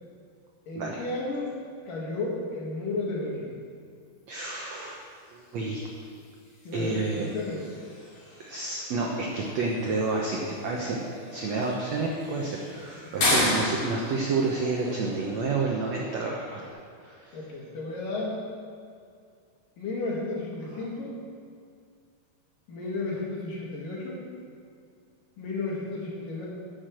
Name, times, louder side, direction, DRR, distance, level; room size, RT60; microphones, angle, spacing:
voice 1, 0.7-1.5 1.9-3.6 6.6-7.7 13.2-13.4 17.3-18.4 19.8-21.2 22.7-24.2 25.4-26.5, left 2 dB, 60° left, -4 dB, 3.6 m, -33 dB
voice 2, 4.3-5.0 5.3-5.8 6.7-7.3 8.4-17.4, right 3 dB, 75° right, -1 dB, 1.6 m, -30 dB
sound 1, 4.8-16.7, left 1 dB, 45° left, 3.7 m, -35 dB
11.5 x 7.2 x 7.7 m, 2.3 s
omnidirectional pair, 4.6 m